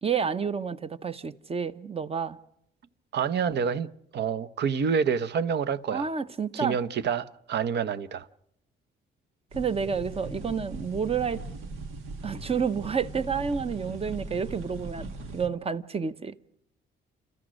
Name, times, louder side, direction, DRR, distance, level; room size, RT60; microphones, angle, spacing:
voice 1, 0.0-2.4 5.9-6.8 9.5-11.4 12.2-15.1 15.3-16.3, right 6 dB, 30° right, 0.8 m, -29 dB
voice 2, 3.1-6.1 6.5-8.3, right 6 dB, 60° right, 0.8 m, -28 dB
sound 1, 9.5-15.5, right 2 dB, 90° right, 1.6 m, -39 dB
30.0 x 13.5 x 6.4 m
cardioid pair, 90°, 20 cm